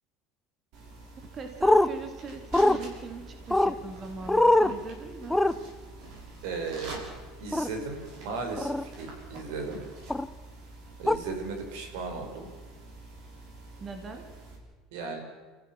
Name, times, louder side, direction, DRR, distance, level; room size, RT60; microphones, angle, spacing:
sound 1, 0.7-14.6, right 2 dB, 55° right, 6.5 m, -46 dB
voice 1, 1.3-5.4 13.8-14.3, right 4 dB, 25° right, 5 dB, 2.1 m, -41 dB
sound 2, 1.6-1.9 2.5-2.8 3.5-3.7 4.3-4.7 5.3-5.5 7.5-7.7 8.6-8.8 10.1-10.3 11.1-11.2, left 1 dB, 5° left, 0.6 m, -21 dB
voice 2, 6.4-7.0 7.4-9.8 11.0-12.5 14.9-15.2, right 4 dB, 85° right, 4 dB, 5.1 m, -36 dB
29.0 x 15.0 x 7.3 m, 1.3 s
cardioid pair, 160°, 0 cm